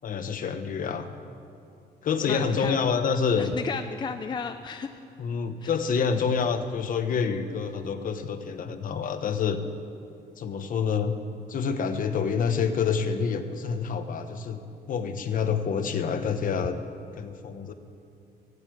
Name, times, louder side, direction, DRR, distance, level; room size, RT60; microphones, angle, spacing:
voice 1, 0.0-1.1 2.0-3.5 5.2-9.6 10.4-11.2 11.5-14.6 14.9-16.8 17.2-17.7, left 6 dB, 55° left, 8 dB, 1.0 m, -27 dB
voice 2, 2.3-2.9 3.4-4.9 5.6-5.7, left 5 dB, 25° left, 7 dB, 0.5 m, -33 dB
15.5 x 8.1 x 9.1 m, 2.5 s
cardioid pair, 145°, 17 cm